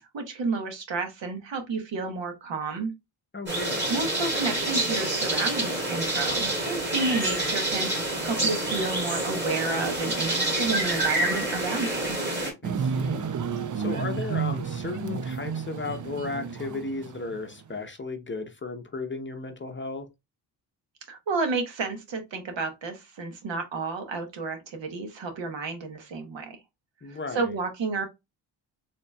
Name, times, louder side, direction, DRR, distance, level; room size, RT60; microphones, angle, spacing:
voice 1, 0.1-2.9 3.9-12.2 21.1-26.6 27.1-28.0, right 3 dB, 65° right, 1.3 m, -31 dB
voice 2, 3.3-3.8 12.6-13.3 13.7-20.1 27.0-27.5, left 3 dB, 25° left, 0.7 m, -35 dB
sound 1, 3.5-12.5, right 1 dB, 20° right, 2.0 m, -27 dB
sound 2, 12.6-17.4 17.8-17.9, right 6 dB, 40° right, 0.5 m, -31 dB
4.1 x 2.9 x 2.3 m
supercardioid pair, 60°, 48 cm